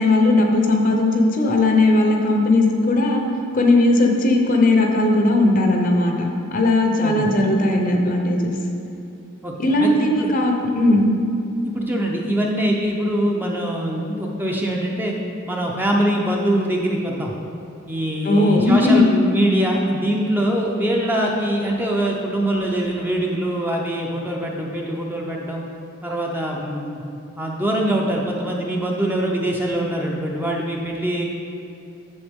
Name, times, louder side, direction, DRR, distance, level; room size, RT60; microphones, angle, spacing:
voice 1, 0.0-3.2 3.5-8.5 9.6-11.1 18.2-19.0, left 2 dB, 40° left, 2 dB, 0.8 m, -17 dB
voice 2, 9.4-10.3 11.6-15.1 15.5-17.3 17.9-25.6 26.0-27.0 27.4-31.2, right 1 dB, 10° right, -1 dB, 0.6 m, -23 dB
8.0 x 6.8 x 3.6 m, 2.7 s
head